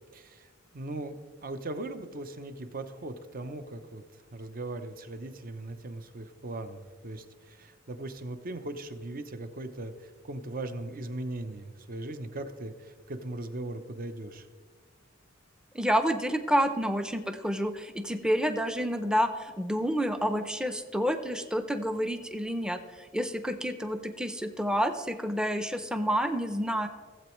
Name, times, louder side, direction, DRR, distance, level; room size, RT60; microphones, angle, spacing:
voice 1, 0.1-14.5, right 2 dB, 45° right, 9 dB, 0.7 m, -39 dB
voice 2, 15.7-26.9, equal, 5° right, 8 dB, 0.5 m, -29 dB
16.5 x 7.8 x 3.1 m, 1.5 s
head